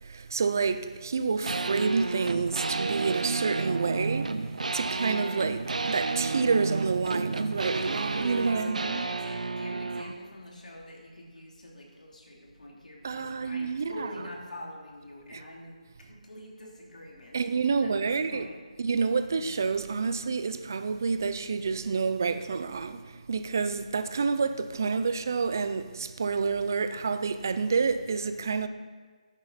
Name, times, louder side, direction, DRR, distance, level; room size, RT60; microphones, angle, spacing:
voice 1, 0.1-4.3 4.7-9.0 13.0-14.1 15.3-15.4 17.3-18.5 18.8-23.0 23.3-28.7, right 5 dB, 25° right, 0.4 m, -28 dB
sound 1, 1.4-10.1, right 3 dB, 70° right, 0.7 m, -31 dB
voice 2, 8.3-18.6, left 1 dB, 80° left, 3.2 m, -46 dB
13.0 x 9.7 x 4.1 m
hypercardioid pair, 180°, 4 cm